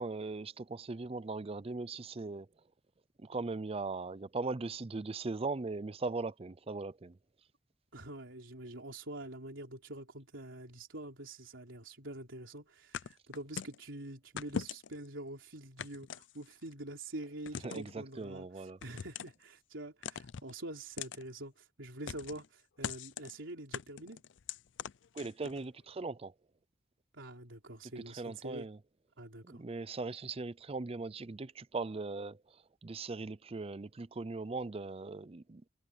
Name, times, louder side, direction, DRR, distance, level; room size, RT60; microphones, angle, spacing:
voice 1, 0.0-2.5 3.2-7.2 17.6-18.8 25.1-26.3 28.1-28.8 29.4-35.6, right 3 dB, 30° right, 0.5 m, -39 dB
voice 2, 7.9-24.2 27.1-28.7 29.2-29.6, right 1 dB, 85° right, 3.7 m, -46 dB
sound 1, 12.9-13.8 14.4-15.1 15.8-16.7 17.5-17.9 18.8-19.4 20.0-20.5 21.0-21.2 22.1-22.5 22.8-23.3 23.7-25.6, left 7 dB, 70° left, 0.5 m, -41 dB
head